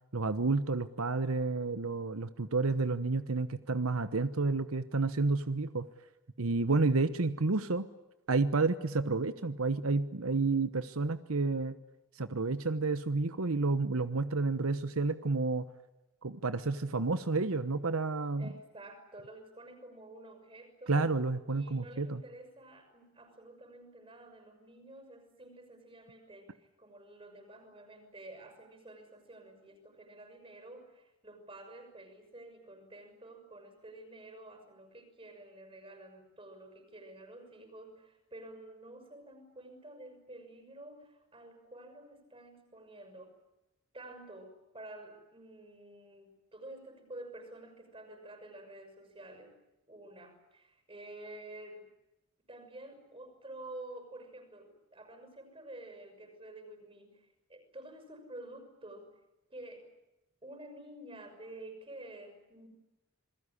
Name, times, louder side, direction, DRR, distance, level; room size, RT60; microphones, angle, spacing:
voice 1, 0.1-5.9 6.4-7.9 8.3-11.8 12.1-15.7 16.2-18.5 20.9-22.2, right 3 dB, 85° right, 12 dB, 1.1 m, -30 dB
voice 2, 18.4-21.1 21.5-43.4 43.9-49.5 49.9-51.9 52.5-59.2 59.5-59.9 60.4-62.7, right 1 dB, 25° right, 7 dB, 6.1 m, -50 dB
28.0 x 21.0 x 9.9 m, 0.94 s
head